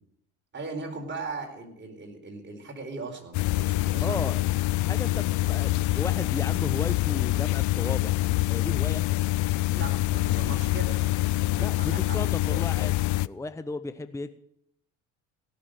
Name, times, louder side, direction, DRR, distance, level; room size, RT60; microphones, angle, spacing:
voice 1, 0.5-4.2 9.7-11.0 11.6-12.2, right 3 dB, 30° right, 3 dB, 4.3 m, -38 dB
sound 1, 3.3-13.3, left 18 dB, 60° left, 0.5 m, -25 dB
voice 2, 4.0-4.4 4.8-8.2 8.5-9.0 11.6-13.0 13.2-14.3, left 2 dB, 10° left, 12 dB, 0.7 m, -35 dB
17.0 x 6.8 x 9.0 m, 0.72 s
hypercardioid pair, 70°, 34 cm